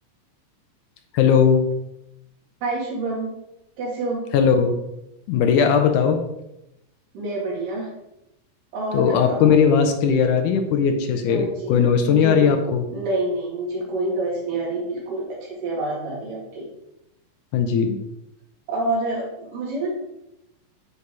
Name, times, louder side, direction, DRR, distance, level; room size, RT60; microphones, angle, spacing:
voice 1, 1.1-1.7 4.3-4.8 5.3-6.2 8.9-12.8 17.5-18.0, left 6 dB, 75° left, 6 dB, 2.2 m, -18 dB
voice 2, 2.6-3.4 3.8-4.3 7.1-7.9 8.7-9.6 11.3-11.8 12.1-16.7 18.7-19.9, right 2 dB, 80° right, -3 dB, 4.0 m, -27 dB
9.7 x 4.1 x 4.8 m, 0.86 s
omnidirectional pair, 3.8 m